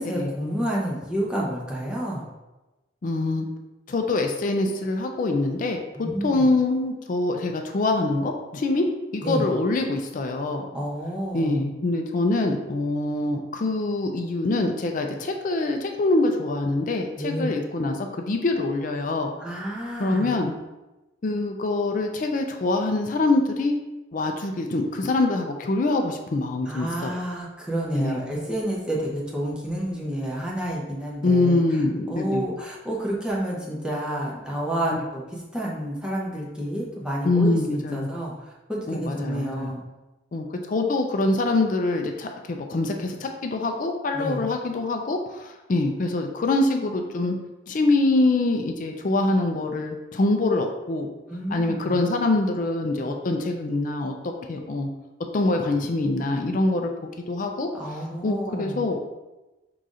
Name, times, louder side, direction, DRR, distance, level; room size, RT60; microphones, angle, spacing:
voice 1, 0.0-2.3 5.9-6.5 9.2-9.5 10.7-11.6 17.2-17.5 19.4-20.3 26.7-38.3 38.7-39.8 44.1-44.5 51.3-52.0 57.7-58.9, right 1 dB, 5° right, -5 dB, 0.7 m, -30 dB
voice 2, 3.0-3.5 3.9-8.9 9.1-10.6 11.3-19.3 20.0-20.5 21.2-23.8 24.1-27.2 27.9-28.2 31.2-32.4 37.2-38.1 38.9-39.7 40.3-47.4 47.7-51.1 51.5-54.9 55.3-57.7 58.2-59.0, left 2 dB, 45° left, 4 dB, 0.4 m, -24 dB
5.6 x 3.8 x 2.5 m, 1.1 s
head